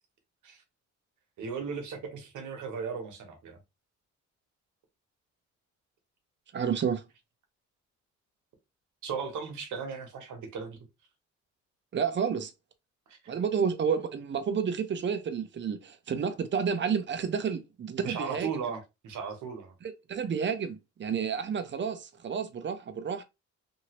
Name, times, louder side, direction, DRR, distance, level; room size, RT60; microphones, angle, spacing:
voice 1, 1.4-3.6 9.0-10.8 13.1-13.2 18.0-19.7, right 6 dB, 75° right, 1.1 m, -36 dB
voice 2, 6.5-7.0 11.9-12.5 13.3-18.6 19.8-23.2, right 6 dB, 40° right, 0.7 m, -30 dB
2.9 x 2.7 x 2.9 m
cardioid pair, 90°, 30 cm